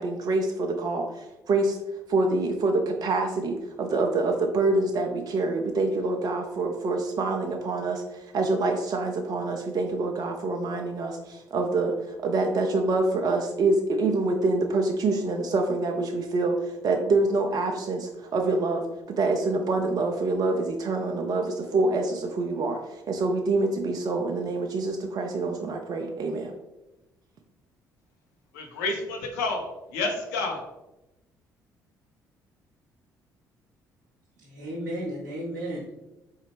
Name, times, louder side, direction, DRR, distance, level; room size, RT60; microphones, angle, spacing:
voice 1, 0.0-1.8 2.1-18.8 19.2-26.5, right 3 dB, 40° right, 3 dB, 0.5 m, -26 dB
voice 2, 28.5-30.6, left 3 dB, 70° left, 2 dB, 0.6 m, -30 dB
voice 3, 34.4-35.9, right 1 dB, 85° right, -7 dB, 0.7 m, -34 dB
3.8 x 3.1 x 3.3 m, 0.97 s
figure-of-eight pair, 45°, 10 cm